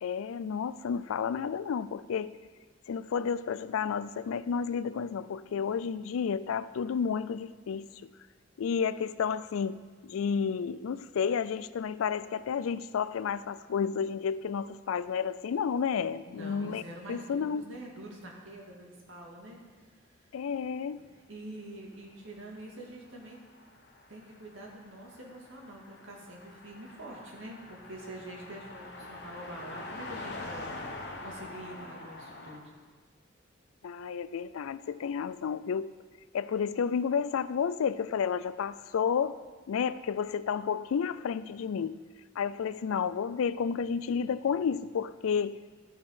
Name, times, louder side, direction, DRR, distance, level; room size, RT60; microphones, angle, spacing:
voice 1, 0.0-2.4 2.9-7.9 8.6-9.8 10.0-16.8 17.1-17.7 20.3-21.0 33.8-35.9 36.3-39.4 39.7-41.9 42.4-45.6, left 6 dB, 90° left, 16 dB, 0.4 m, -31 dB
voice 2, 16.2-20.2 21.0-23.4 24.1-32.7, right 1 dB, 70° right, -2 dB, 2.0 m, -46 dB
Car passing by, 22.4-32.6, left 2 dB, 55° left, 1.1 m, -45 dB
12.5 x 5.1 x 5.6 m, 1.4 s
head